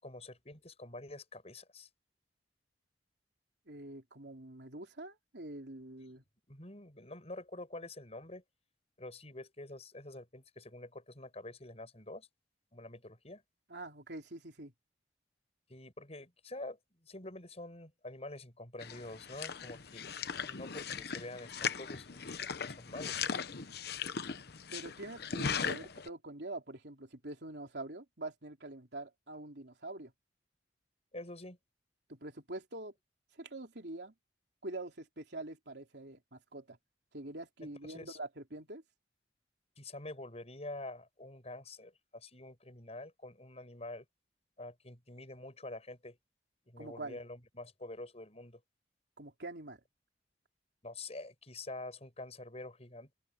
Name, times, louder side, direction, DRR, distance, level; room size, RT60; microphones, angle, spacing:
voice 1, 0.0-1.9 6.1-6.2 6.5-8.4 9.0-12.3 12.7-13.4 15.7-22.2 22.6-23.3 31.1-31.6 37.8-38.2 39.8-44.0 44.6-46.2 46.7-48.6 50.8-53.1, left 2 dB, 35° left, 7.7 m, -47 dB
voice 2, 3.7-6.2 13.7-14.7 24.7-30.1 32.1-32.9 33.3-34.1 34.6-36.8 37.1-38.8 46.8-47.2 49.2-49.8, right 2 dB, 65° right, 3.6 m, -45 dB
sound 1, 18.8-26.1, left 6 dB, 60° left, 1.0 m, -38 dB
open air
head